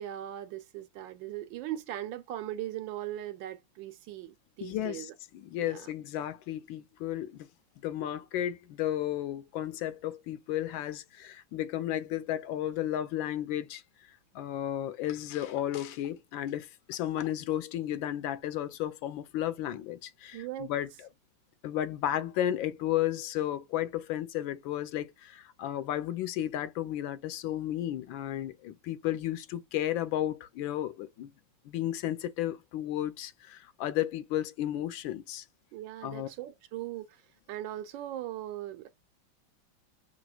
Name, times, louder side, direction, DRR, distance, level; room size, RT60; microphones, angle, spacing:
voice 1, 0.0-5.1 5.6-5.9 20.3-20.7 35.7-37.2 37.5-38.9, right 13 dB, 75° right, 1.2 m, -39 dB
voice 2, 4.6-7.5 7.8-13.8 14.3-21.1 21.6-31.3 31.7-35.4 36.0-36.3, left 12 dB, 75° left, 1.3 m, -33 dB
6.0 x 2.5 x 2.3 m
omnidirectional pair, 2.3 m